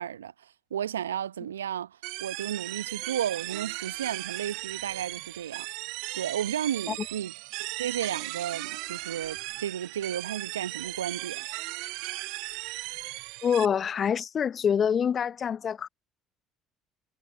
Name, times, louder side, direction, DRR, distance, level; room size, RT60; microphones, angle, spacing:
voice 1, 0.0-5.7 6.1-7.3 7.6-11.5, right 10 dB, 85° right, 1.1 m, -33 dB
sound 1, 2.0-13.7, right 25 dB, 65° right, 1.3 m, -37 dB
voice 2, 13.4-15.9, left 7 dB, 45° left, 0.9 m, -26 dB
figure-of-eight pair, 55°, 0 cm